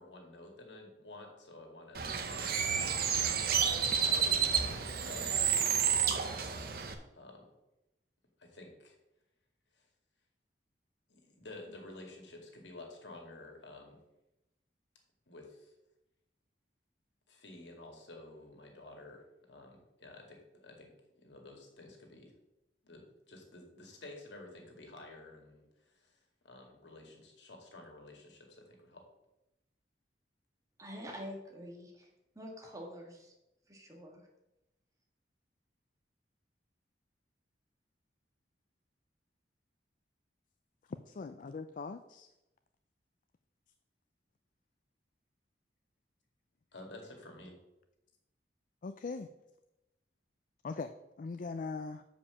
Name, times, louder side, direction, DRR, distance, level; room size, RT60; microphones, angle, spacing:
voice 1, 0.0-3.2 4.0-6.0 7.1-7.4 8.4-8.9 11.1-14.0 15.3-15.7 17.3-19.2 19.5-20.9 21.2-22.3 22.8-25.6 26.0-26.1 26.5-29.0 46.7-47.5, left 2 dB, 90° left, 2 dB, 2.0 m, -51 dB
Bird, 1.9-6.9, right 7 dB, 60° right, 0.9 m, -30 dB
voice 2, 30.8-32.1 32.3-33.3 33.7-34.3, equal, 20° right, 0 dB, 1.7 m, -46 dB
voice 3, 41.1-42.3 48.8-49.3 50.6-52.0, left 4 dB, 50° left, 10 dB, 0.4 m, -41 dB
6.8 x 5.1 x 7.0 m, 0.92 s
head